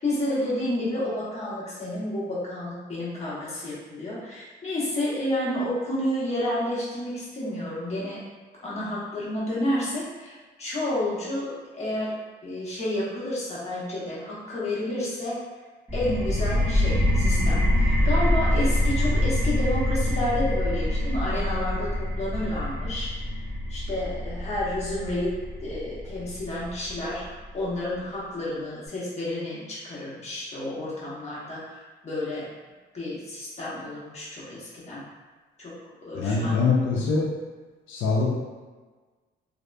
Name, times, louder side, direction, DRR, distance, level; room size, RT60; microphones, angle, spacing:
voice 1, 0.0-8.2 8.6-12.1 12.4-15.4 15.9-23.1 23.7-25.4 25.6-32.4 32.9-35.0 35.6-35.7 36.0-36.6, left 1 dB, 35° left, -8 dB, 1.1 m, -30 dB
sound 1, 15.9-27.3, left 1 dB, 15° right, 1.3 m, -25 dB
voice 2, 36.2-37.3 37.9-38.3, left 4 dB, 75° left, -3 dB, 0.5 m, -23 dB
2.7 x 2.5 x 2.2 m, 1.3 s
cardioid pair, 90°, 20 cm